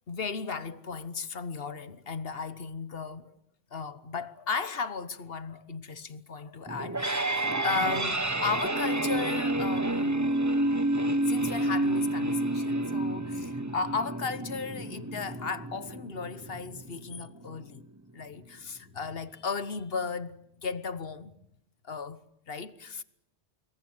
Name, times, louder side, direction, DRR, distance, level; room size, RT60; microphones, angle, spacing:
voice 1, 0.1-3.3 3.7-10.3 11.3-17.8 18.1-21.3 21.8-23.0, left 5 dB, 60° left, 1.3 m, -35 dB
sound 1, 6.7-17.7, right 1 dB, 15° right, 1.3 m, -29 dB
26.5 x 22.0 x 7.9 m
omnidirectional pair, 1.1 m